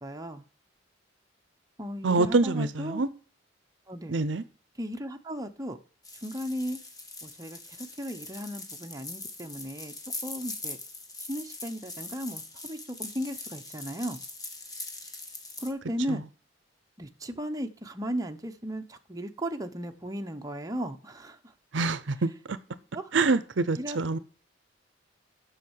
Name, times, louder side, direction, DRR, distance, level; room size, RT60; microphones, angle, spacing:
voice 1, 0.0-0.4 1.8-3.0 3.9-4.1 4.8-5.8 6.2-6.8 7.2-9.9 10.2-10.8 11.3-14.2 15.6-16.2 17.0-21.5 22.9-23.1 23.8-24.0, equal, 20° right, 0.9 m, -36 dB
voice 2, 2.0-3.1 4.1-4.4 16.1-16.2 21.7-22.6 23.1-24.2, right 3 dB, 70° right, 0.7 m, -26 dB
sound 1, 6.0-15.7, left 3 dB, 20° left, 1.6 m, -42 dB
7.6 x 6.5 x 7.9 m
head